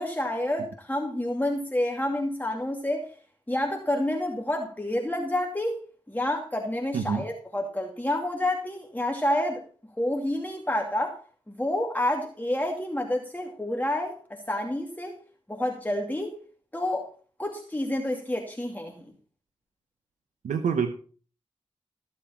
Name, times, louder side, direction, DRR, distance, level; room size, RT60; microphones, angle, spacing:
voice 1, 0.0-3.1 3.5-5.8 6.1-9.6 10.0-11.2 11.5-15.1 15.5-16.4 16.7-17.1 17.4-19.0, left 1 dB, 15° left, 1 dB, 2.4 m, -29 dB
voice 2, 6.9-7.2 20.4-20.9, right 6 dB, 90° right, 7 dB, 1.0 m, -26 dB
14.5 x 7.4 x 4.4 m, 0.41 s
cardioid pair, 45°, 12 cm